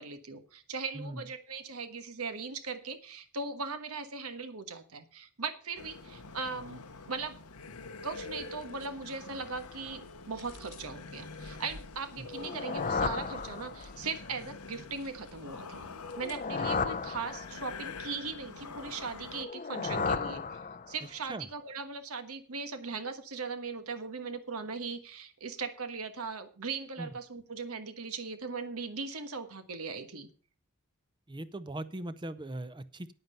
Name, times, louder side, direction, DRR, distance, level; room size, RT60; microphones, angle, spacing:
voice 1, 0.0-7.4 8.0-15.9 16.2-20.6 20.9-30.3, right 4 dB, 75° right, 9 dB, 1.3 m, -39 dB
voice 2, 0.9-1.3 12.2-12.3 21.0-21.5 27.0-27.1 31.3-33.1, right 1 dB, 20° right, 14 dB, 0.6 m, -40 dB
sound 1, 5.8-19.5, left 4 dB, 90° left, 1.1 m, -46 dB
sound 2, 8.3-16.4, left 2 dB, 70° left, 1.5 m, -53 dB
sound 3, 12.3-14.1 16.0-17.9 19.3-21.2, left 4 dB, 35° left, 0.6 m, -34 dB
9.5 x 9.4 x 5.5 m, 0.41 s
head